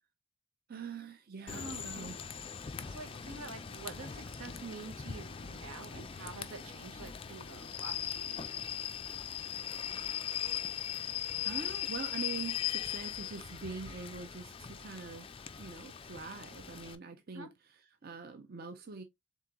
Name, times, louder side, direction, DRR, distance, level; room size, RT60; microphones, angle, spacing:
voice 1, 0.7-2.2 11.4-15.2 15.6-17.5 18.0-19.0, right 5 dB, 45° right, 0.5 m, -44 dB
Rain / Train, 1.5-16.9, left 10 dB, 25° left, 0.3 m, -40 dB
voice 2, 1.5-1.9 2.8-8.7 17.3-17.5, right 3 dB, 85° right, 1.0 m, -47 dB
3.7 x 3.7 x 2.8 m
head